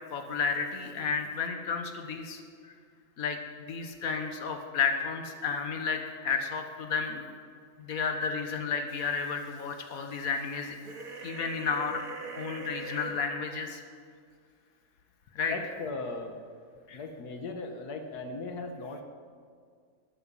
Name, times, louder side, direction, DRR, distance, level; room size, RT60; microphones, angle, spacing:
voice 1, 0.1-2.7 3.2-7.2 7.8-10.8 11.2-12.0 12.4-13.8 15.4-15.5 16.9-17.0, left 5 dB, 65° left, 5 dB, 1.9 m, -32 dB
sound 1, 10.8-13.1, right 4 dB, 65° right, 2.5 m, -41 dB
voice 2, 15.5-16.3 16.9-19.0, left 3 dB, 90° left, 5 dB, 1.8 m, -37 dB
21.0 x 12.5 x 5.6 m, 2.1 s
omnidirectional pair, 1.6 m